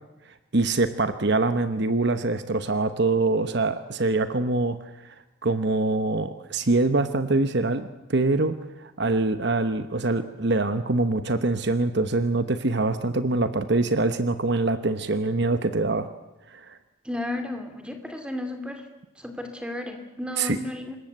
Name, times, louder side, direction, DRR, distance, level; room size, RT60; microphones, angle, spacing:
voice 1, 0.5-4.8 5.4-16.1 16.5-16.8 20.4-20.6, right 2 dB, 55° right, 10 dB, 1.1 m, -24 dB
voice 2, 17.0-18.9 19.2-21.0, left 1 dB, 5° right, 6 dB, 2.7 m, -33 dB
26.5 x 21.0 x 8.1 m, 0.97 s
head